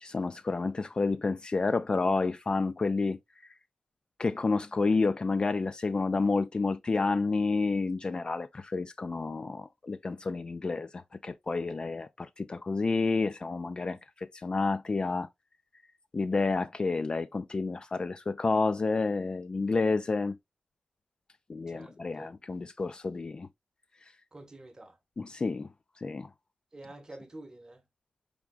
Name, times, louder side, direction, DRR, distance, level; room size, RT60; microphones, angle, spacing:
voice 1, 0.0-3.2 4.2-15.3 16.1-20.4 21.5-23.5 25.2-25.7 26.0-26.3, left 3 dB, 30° left, 0.3 m, -30 dB
voice 2, 21.7-22.3 24.3-25.0 26.7-27.8, right 2 dB, 25° right, 0.8 m, -48 dB
4.7 x 3.5 x 2.4 m
wide cardioid pair, 150°, 3 cm